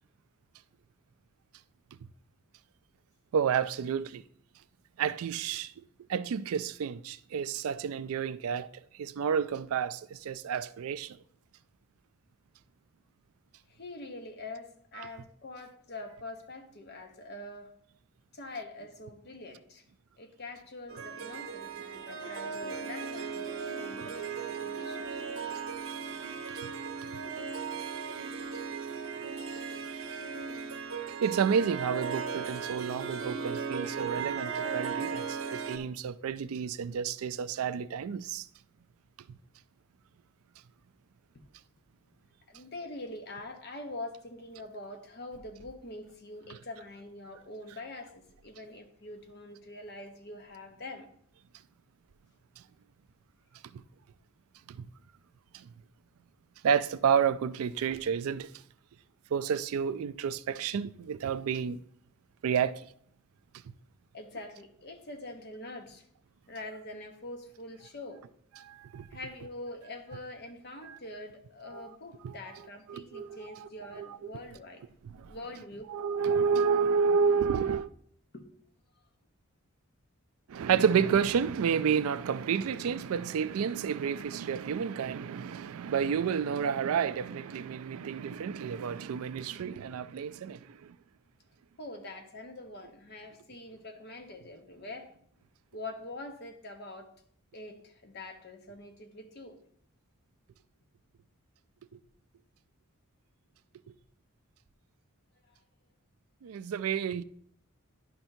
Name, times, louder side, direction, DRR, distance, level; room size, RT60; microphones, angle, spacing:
voice 1, 3.3-4.2 5.0-5.7 6.1-8.7 9.0-11.2 15.0-15.1 31.2-38.5 54.7-54.9 55.5-55.6 56.6-58.5 59.3-61.8 62.4-62.8 68.6-69.1 70.9-71.0 71.7-71.9 72.9-74.1 75.2-75.3 75.9-77.9 80.5-90.8 106.4-107.2, right 7 dB, 85° right, 0.4 m, -30 dB
voice 2, 13.7-17.7 18.3-19.8 20.2-25.2 42.5-51.1 64.1-66.1 66.5-68.2 69.1-74.8 75.3-75.9 78.3-78.5 91.8-95.1 95.7-97.1 97.5-99.6 105.5-105.6, left 2 dB, 50° left, 0.9 m, -44 dB
Harp, 20.9-35.8, right 6 dB, 65° right, 0.8 m, -37 dB
11.0 x 5.8 x 2.7 m
head